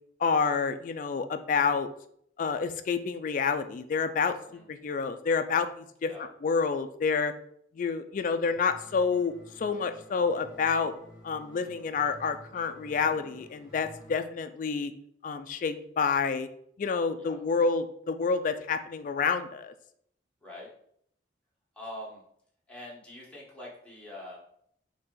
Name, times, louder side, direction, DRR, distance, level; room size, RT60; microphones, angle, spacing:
voice 1, 0.2-1.9 2.4-4.3 4.7-7.3 7.8-10.9 11.2-14.9 15.2-16.5 16.8-19.7, left 5 dB, 45° left, 8 dB, 0.3 m, -28 dB
sound 1, 8.5-14.1, equal, 20° right, 1.7 m, -52 dB
voice 2, 20.4-20.7 21.7-22.2 22.7-24.4, left 1 dB, 5° left, -6 dB, 1.3 m, -44 dB
4.1 x 2.8 x 3.7 m, 0.67 s
head